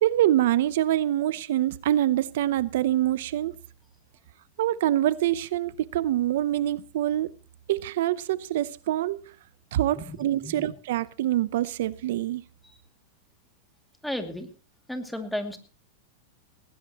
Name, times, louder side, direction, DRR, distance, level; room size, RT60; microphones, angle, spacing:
voice 1, 0.0-3.5 4.6-7.3 7.7-9.2 9.7-12.4, right 13 dB, 70° right, 0.7 m, -25 dB
voice 2, 9.9-10.7 12.6-12.8 14.0-14.5 14.9-15.6, left 1 dB, ahead, 2.5 m, -34 dB
19.0 x 18.5 x 3.0 m
supercardioid pair, 145°, 0 cm